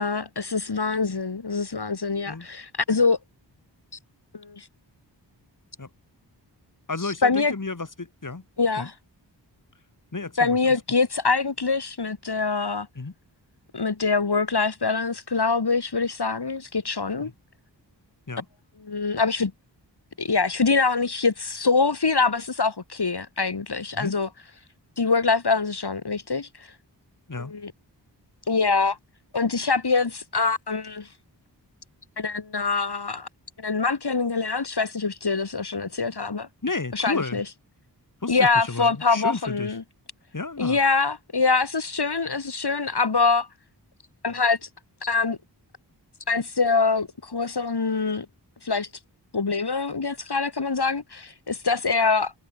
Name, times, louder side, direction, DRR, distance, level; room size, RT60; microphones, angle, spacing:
voice 1, 0.0-3.2 4.3-4.7 7.2-7.5 8.6-8.9 10.4-12.9 13.7-17.3 18.9-19.5 20.2-24.3 25.0-26.5 27.5-27.7 28.5-29.0 29.3-31.1 32.2-33.3 33.6-36.5 36.9-37.4 38.3-39.8 40.6-43.5 44.2-44.6 45.0-45.4 46.3-48.3 48.6-48.9 49.3-52.3, left 4 dB, 65° left, 5.3 m, -24 dB
voice 2, 6.9-8.4 8.8-8.9 10.1-10.6 13.0-13.1 17.2-17.3 18.3-18.5 23.9-24.1 27.3-27.5 36.6-37.4 38.2-39.8 40.3-40.8, left 3 dB, 45° left, 5.5 m, -32 dB
wide cardioid pair, 80°, 43 cm